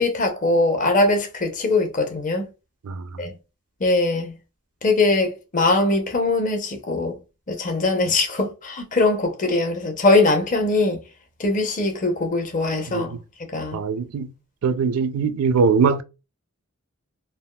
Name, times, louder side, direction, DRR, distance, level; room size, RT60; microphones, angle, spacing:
voice 1, 0.0-2.5 3.2-3.3 3.8-4.3 4.8-7.2 7.5-11.0 11.4-13.1 13.5-13.8, left 2 dB, 35° left, 0.7 m, -21 dB
voice 2, 2.8-3.2 12.9-13.2 13.7-14.3 14.6-16.0, right 5 dB, 80° right, 0.4 m, -22 dB
3.4 x 2.4 x 2.2 m
head